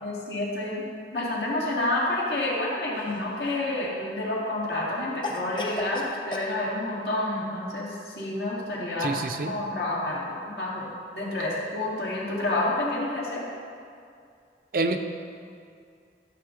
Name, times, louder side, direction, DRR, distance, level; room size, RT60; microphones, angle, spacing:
voice 1, 0.0-0.8 1.1-9.1 9.4-10.9 11.1-13.4, left 2 dB, 70° left, -5 dB, 2.1 m, -29 dB
Cough, 2.9-3.7 5.2-6.5, left 2 dB, 25° left, 0.6 m, -35 dB
voice 2, 9.0-9.6 14.7-15.0, right 3 dB, 50° right, 6 dB, 0.5 m, -27 dB
12.5 x 6.5 x 3.8 m, 2.3 s
head